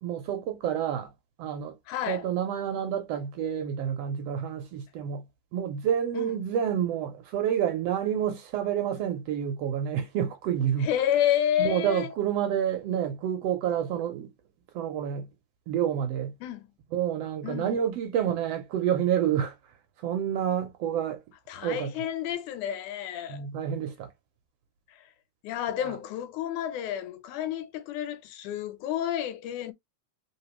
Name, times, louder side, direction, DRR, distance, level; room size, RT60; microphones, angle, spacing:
voice 1, 0.0-1.1 1.4-1.8 2.1-5.3 5.5-10.9 11.6-14.3 14.7-15.3 15.7-16.4 16.9-21.2 21.6-21.9 23.3-24.1 25.8-26.0, right 9 dB, 70° right, 1.6 m, -29 dB
voice 2, 1.9-2.2 6.1-6.4 10.8-12.1 16.4-16.6 17.4-17.7 21.5-23.5 25.0-25.1 25.4-29.7, left 11 dB, 85° left, 2.3 m, -30 dB
3.9 x 3.6 x 2.9 m
omnidirectional pair, 3.4 m